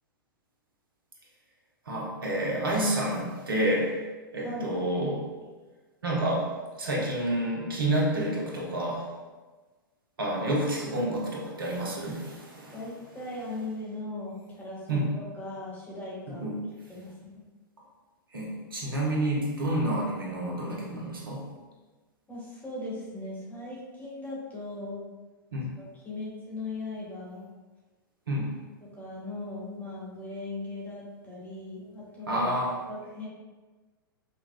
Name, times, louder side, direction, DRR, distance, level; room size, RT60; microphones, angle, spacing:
voice 1, 1.9-4.0 4.3-5.3 6.0-9.1 10.2-12.8 14.9-15.1 16.4-16.7 18.3-21.4 25.5-25.7 28.3-28.5 32.3-32.7, right 1 dB, 70° right, -3 dB, 1.0 m, -29 dB
voice 2, 4.4-4.7 12.7-16.5 16.9-17.5 22.3-25.1 25.8-27.5 28.9-32.5 32.9-33.3, left 2 dB, 15° left, -6 dB, 1.3 m, -38 dB
5.3 x 2.3 x 2.3 m, 1.3 s
figure-of-eight pair, 100°, 12 cm